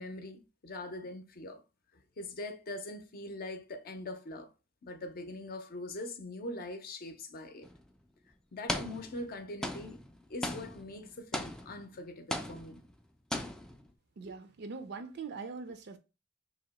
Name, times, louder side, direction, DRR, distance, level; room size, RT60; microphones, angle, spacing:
voice 1, 0.0-1.6 2.2-4.5 4.8-7.7 8.5-10.0 10.3-12.8, left 2 dB, 50° left, 0.6 m, -42 dB
sound 1, 7.6-7.8 8.7-9.3 9.6-11.9 12.3-13.0 13.3-13.9, left 1 dB, 5° left, 0.3 m, -38 dB
voice 2, 14.2-16.0, right 4 dB, 55° right, 0.5 m, -42 dB
2.8 x 2.8 x 4.0 m
head